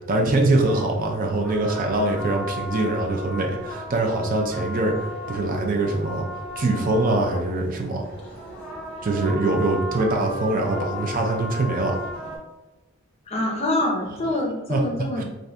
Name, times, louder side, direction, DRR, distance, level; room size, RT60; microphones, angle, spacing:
voice 1, 0.0-6.3 6.6-8.1 9.0-12.0 14.7-14.8 15.2-15.3, right 2 dB, 40° right, 1 dB, 0.4 m, -23 dB
sound 1, 0.6-12.4, left 1 dB, 5° left, 1.1 m, -35 dB
voice 2, 13.3-15.2, left 1 dB, 30° left, 0 dB, 0.6 m, -25 dB
2.6 x 2.5 x 3.2 m, 1.1 s
head